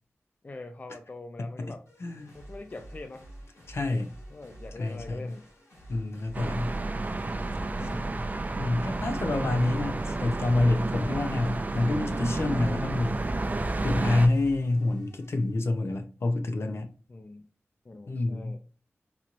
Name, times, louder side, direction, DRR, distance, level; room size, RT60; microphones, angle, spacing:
voice 1, 0.4-1.8 2.3-3.3 4.3-5.5 7.8-8.2 17.1-17.4 17.9-18.6, left 2 dB, 35° left, 0.4 m, -43 dB
voice 2, 1.4-1.7 2.0-2.3 3.7-4.1 4.8-5.3 5.9-6.8 8.5-13.3 13.8-16.9 18.1-18.6, left 2 dB, 65° left, 0.7 m, -27 dB
sound 1, 1.9-15.6, right 1 dB, 85° left, 2.0 m, -49 dB
sound 2, 6.3-14.3, right 2 dB, 35° right, 0.4 m, -31 dB
4.2 x 3.0 x 2.5 m
wide cardioid pair, 90°, 5 cm